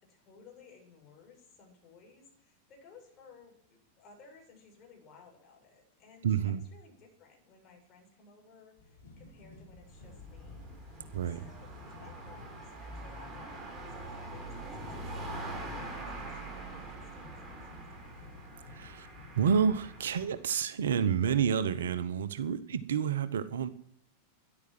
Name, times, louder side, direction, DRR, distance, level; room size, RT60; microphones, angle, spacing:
voice 1, 0.0-10.8 11.4-18.3, left 5 dB, 35° left, 1 dB, 7.7 m, -58 dB
voice 2, 6.2-6.6 11.1-11.5 18.7-19.1 19.3-23.7, right 7 dB, 65° right, 14 dB, 1.0 m, -29 dB
sound 1, 8.8-20.5, left 2 dB, 60° left, 4.8 m, -53 dB
sound 2, 9.7-20.4, right 2 dB, 10° right, 7.2 m, -44 dB
13.5 x 11.0 x 7.8 m, 0.69 s
figure-of-eight pair, 90°, 0 cm